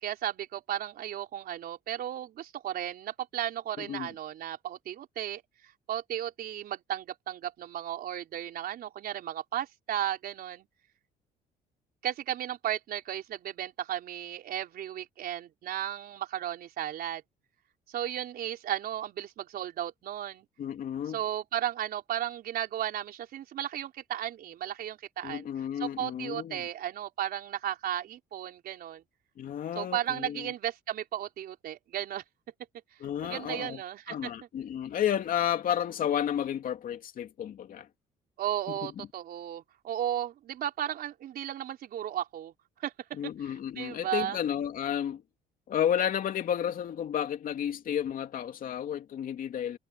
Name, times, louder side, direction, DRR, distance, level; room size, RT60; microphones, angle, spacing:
voice 1, 0.0-5.4 5.9-10.7 12.0-17.2 17.9-20.5 21.1-25.5 25.8-29.0 29.7-32.2 33.2-34.3 38.4-42.5 42.8-43.2 43.8-44.4, right 11 dB, 60° right, 4.5 m, -34 dB
voice 2, 3.8-4.1 20.6-21.2 25.2-26.7 29.4-30.5 33.0-33.8 34.1-37.9 38.7-39.1 43.2-45.2 45.7-49.8, left 9 dB, 55° left, 2.7 m, -32 dB
cardioid pair, 110°, 17 cm